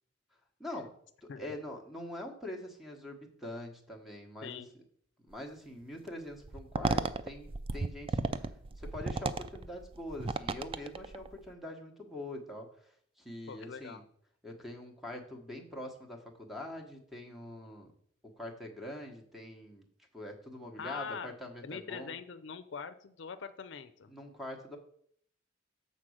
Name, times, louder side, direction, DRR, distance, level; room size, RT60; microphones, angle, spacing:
voice 1, 0.6-0.9 1.2-4.6 5.3-8.5 8.8-14.0 14.4-17.9 18.2-19.9 20.1-22.1 24.1-24.8, left 1 dB, ahead, 2 dB, 1.1 m, -44 dB
sound 1, 6.4-11.4, right 4 dB, 30° right, 0.3 m, -34 dB
voice 2, 13.5-14.0 20.8-21.3 21.6-24.1, left 6 dB, 70° left, 10 dB, 0.5 m, -43 dB
7.4 x 4.1 x 6.3 m, 0.64 s
head